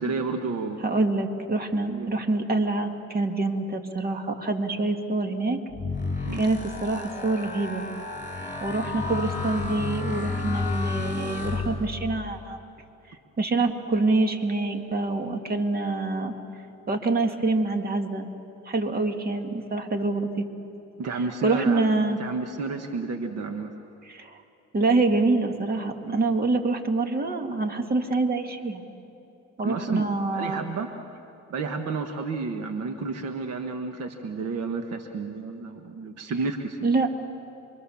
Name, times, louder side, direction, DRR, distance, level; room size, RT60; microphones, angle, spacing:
voice 1, 0.0-0.8 1.9-2.1 6.2-6.4 21.0-21.8 22.2-23.7 26.1-26.3 29.6-30.0 30.3-30.9 31.5-36.9, right 4 dB, 60° right, 5 dB, 1.4 m, -31 dB
voice 2, 0.8-5.6 6.3-7.8 8.6-12.6 13.4-16.3 16.9-18.3 18.7-20.3 21.4-22.2 24.1-24.3 24.7-28.8 29.6-30.6 36.8-37.1, right 3 dB, 30° right, 5 dB, 2.0 m, -26 dB
sound 1, 5.7-12.2, left 3 dB, 25° left, 6.4 m, -31 dB
27.5 x 23.5 x 7.1 m, 2.7 s
cardioid pair, 120°, 29 cm